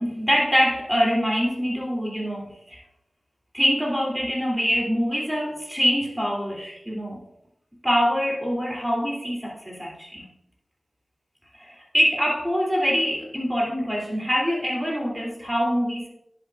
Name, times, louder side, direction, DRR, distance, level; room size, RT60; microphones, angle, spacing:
voice 1, 0.0-2.8 3.5-7.2 7.8-10.3 11.5-16.1, equal, 10° right, -3 dB, 2.9 m, -24 dB
10.0 x 7.3 x 2.5 m, 0.79 s
cardioid pair, 45°, 0 cm